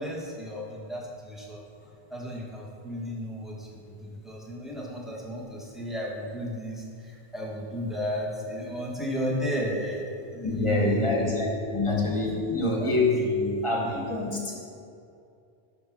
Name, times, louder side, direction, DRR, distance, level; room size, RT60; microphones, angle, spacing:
voice 1, 0.0-1.6 2.1-11.3 12.3-12.5 12.8-12.9, equal, ahead, -4 dB, 1.3 m, -34 dB
voice 2, 10.4-14.5, left 2 dB, 30° left, -2 dB, 1.3 m, -26 dB
6.5 x 5.8 x 6.0 m, 2.5 s
omnidirectional pair, 1.0 m